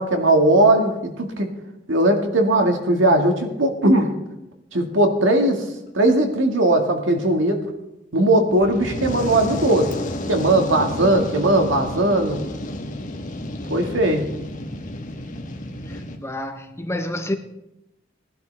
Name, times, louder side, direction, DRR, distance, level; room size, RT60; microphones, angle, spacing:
voice 1, 0.0-1.5 1.9-4.1 4.7-5.6 5.9-7.6 8.1-9.9 10.3-12.4 13.7-14.2, right 1 dB, 75° right, 1.9 m, -18 dB
Fire, 8.5-16.2, left 1 dB, 45° left, 1.3 m, -31 dB
voice 2, 15.9-17.3, left 1 dB, 15° left, 0.8 m, -29 dB
19.0 x 11.5 x 3.4 m
head